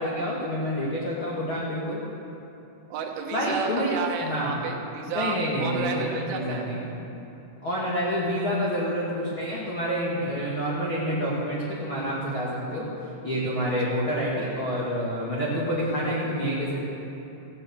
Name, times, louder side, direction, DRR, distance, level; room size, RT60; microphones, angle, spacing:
voice 1, 0.0-2.0 3.3-4.5 5.1-6.9 7.6-12.9 13.2-16.8, equal, 65° left, -6 dB, 1.3 m, -28 dB
voice 2, 2.9-6.7 13.6-14.0, right 6 dB, 75° right, 2 dB, 3.4 m, -32 dB
15.5 x 9.2 x 8.0 m, 2.9 s
omnidirectional pair, 5.8 m